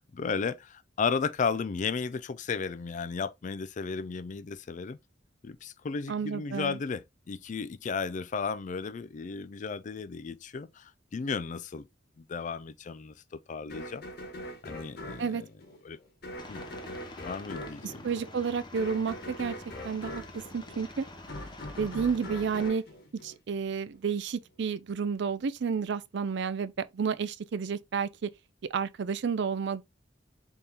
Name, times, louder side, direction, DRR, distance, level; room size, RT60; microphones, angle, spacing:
voice 1, 0.0-5.0 5.4-11.9 12.2-14.0 14.6-15.5 15.8-16.0 16.5-16.6 17.2-18.1, left 5 dB, 40° left, 0.4 m, -34 dB
voice 2, 6.1-6.8 15.2-15.4 17.8-19.5 19.8-20.2 20.5-21.0 21.8-22.8 23.2-28.3 28.7-29.8, right 6 dB, 65° right, 0.4 m, -31 dB
sound 1, 13.7-23.9, left 1 dB, 60° left, 1.4 m, -42 dB
Aircraft, 16.4-22.7, left 2 dB, 25° left, 0.8 m, -47 dB
4.3 x 3.5 x 3.4 m
head